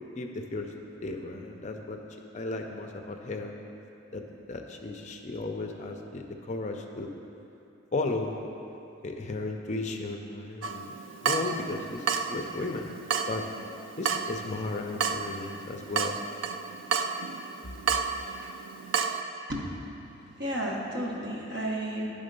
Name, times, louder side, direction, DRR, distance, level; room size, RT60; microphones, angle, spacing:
voice 1, 0.2-0.7 1.0-2.0 2.3-3.6 4.1-7.1 7.9-8.4 9.0-10.9 11.2-12.9 13.3-13.4 14.0-16.2, left 2 dB, 35° left, 3 dB, 0.4 m, -35 dB
Water tap faucet / Drip, 10.6-19.2, right 5 dB, 75° right, 0.4 m, -32 dB
voice 2, 20.3-22.1, right 1 dB, 60° right, -2 dB, 1.1 m, -32 dB
10.5 x 3.6 x 5.2 m, 2.8 s
head